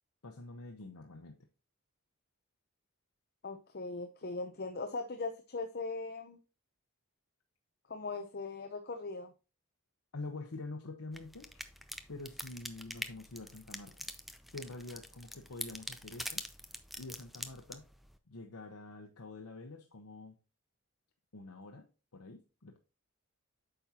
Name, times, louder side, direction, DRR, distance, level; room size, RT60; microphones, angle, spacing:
voice 1, 0.2-1.4 10.1-11.8 12.1-14.1 14.5-16.5 17.0-17.8 18.3-20.4 21.3-21.9 22.1-22.8, left 2 dB, 90° left, 0.9 m, -46 dB
voice 2, 3.4-6.4 7.9-9.3, left 3 dB, 45° left, 0.7 m, -39 dB
sound 1, 11.1-18.2, equal, ahead, 0.5 m, -45 dB
8.7 x 5.9 x 2.9 m
head